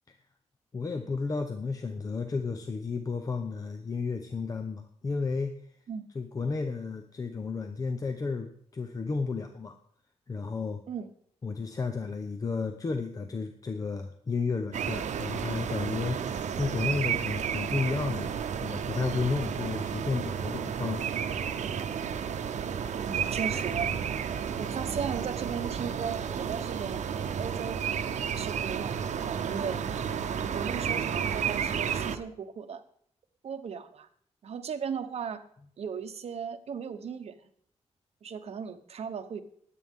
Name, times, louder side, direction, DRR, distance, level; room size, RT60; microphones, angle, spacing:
voice 1, 0.7-5.7 6.1-9.8 10.3-10.8 11.4-18.3 18.6-21.2, left 4 dB, 30° left, 6 dB, 0.7 m, -32 dB
sound 1, 14.7-32.2, right 7 dB, 85° right, 0.8 m, -32 dB
voice 2, 22.9-23.9 24.6-27.0 27.4-27.8 28.1-29.8 30.5-32.8 33.4-34.1 34.4-35.4 35.8-37.3 38.2-39.4, right 6 dB, 60° right, 8 dB, 1.0 m, -36 dB
20.0 x 8.5 x 3.6 m, 0.63 s
wide cardioid pair, 170°, 12 cm